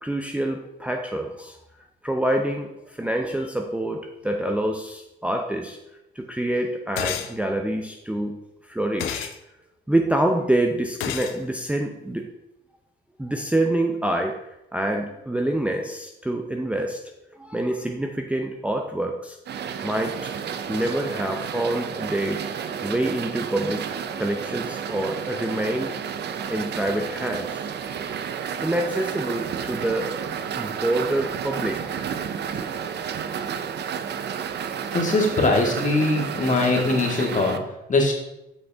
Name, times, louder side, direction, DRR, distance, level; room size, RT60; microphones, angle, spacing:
voice 1, 0.0-1.6 2.0-5.8 6.2-8.4 8.7-9.3 9.9-12.3 13.2-14.4 14.7-17.1 17.4-19.4 19.8-20.3 20.7-23.8 24.2-26.0 26.5-27.6 28.6-30.1 30.6-32.1, right 1 dB, 5° right, 2 dB, 0.6 m, -26 dB
sound 1, 7.0-7.3 9.0-9.4 11.0-11.4, left 10 dB, 90° left, 0.5 m, -29 dB
sound 2, 19.5-37.6, right 7 dB, 60° right, 0.6 m, -31 dB
voice 2, 34.9-37.6 37.9-38.1, left 2 dB, 40° left, 0 dB, 1.9 m, -21 dB
8.3 x 5.4 x 3.5 m, 0.89 s
cardioid pair, 90°, 20 cm